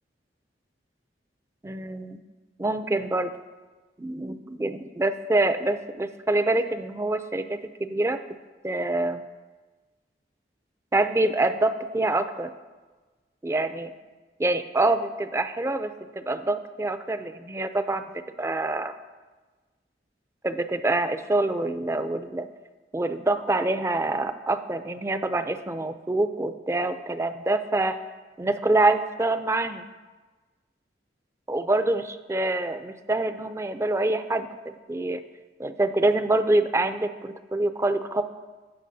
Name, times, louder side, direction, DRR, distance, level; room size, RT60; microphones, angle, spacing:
voice 1, 1.6-2.2 2.6-3.3 4.0-8.2 8.6-9.2 10.9-12.5 13.4-13.9 14.4-18.0 18.4-18.9 20.4-22.5 22.9-28.0 28.4-29.9 31.5-34.5 34.9-35.2 35.6-38.2, right 2 dB, 15° right, 10 dB, 0.3 m, -25 dB
16.0 x 6.0 x 2.7 m, 1.3 s
head